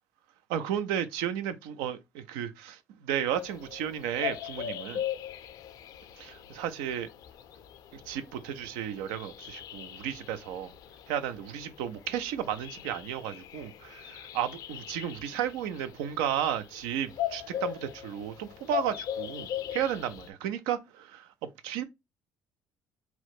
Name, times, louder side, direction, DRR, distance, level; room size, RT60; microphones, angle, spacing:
voice 1, 0.5-5.0 6.2-7.1 7.9-10.7 11.1-21.3 21.6-21.8, right 10 dB, 85° right, 0.4 m, -33 dB
sound 1, 3.3-20.3, left 11 dB, 65° left, 0.4 m, -40 dB
2.9 x 2.2 x 4.0 m
supercardioid pair, 70°, 7 cm